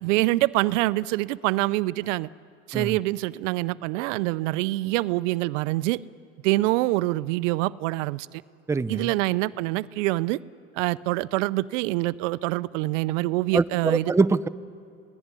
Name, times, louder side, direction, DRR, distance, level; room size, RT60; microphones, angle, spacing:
voice 1, 0.0-2.3 2.7-6.0 6.4-8.4 8.9-10.4 10.8-14.1, right 19 dB, 75° right, 19 dB, 0.6 m, -25 dB
voice 2, 8.7-9.1 13.5-14.5, right 4 dB, 10° right, 11 dB, 0.5 m, -23 dB
26.0 x 18.0 x 9.6 m, 2.6 s
hypercardioid pair, 90°, 37 cm